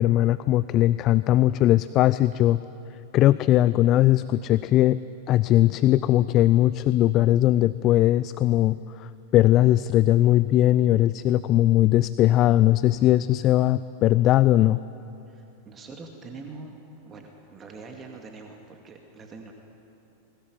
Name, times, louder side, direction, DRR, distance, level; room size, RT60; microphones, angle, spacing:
voice 1, 0.0-2.6 3.1-5.0 5.3-14.8, left 14 dB, 35° left, 16 dB, 0.4 m, -20 dB
voice 2, 15.3-16.7 17.0-19.5, right 3 dB, 25° right, 3 dB, 2.3 m, -43 dB
21.0 x 20.5 x 9.4 m, 2.9 s
figure-of-eight pair, 90°, 0 cm